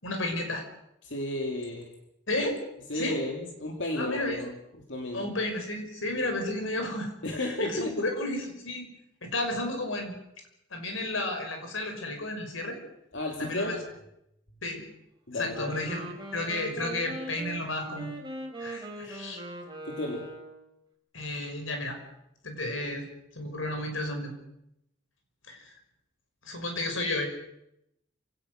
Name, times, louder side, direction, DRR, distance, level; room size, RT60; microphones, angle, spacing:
voice 1, 0.0-0.7 2.3-2.6 2.9-3.2 4.0-4.4 5.1-8.9 9.2-10.2 10.7-12.8 13.4-13.8 14.6-14.9 15.3-18.2 18.6-19.4 21.1-22.0 22.4-23.1 23.3-24.4 25.5-25.7 26.4-27.3, left 2 dB, 85° left, 4 dB, 5.8 m, -32 dB
voice 2, 1.0-1.9 2.9-4.5 4.9-5.3 7.2-7.9 13.1-13.8 15.3-15.7 19.0-19.1 19.9-20.3, left 1 dB, 65° left, 2 dB, 2.9 m, -33 dB
Wind instrument woodwind instrument, 15.5-20.7, right 1 dB, 20° right, 3.7 m, -40 dB
27.0 x 17.5 x 6.5 m, 0.80 s
head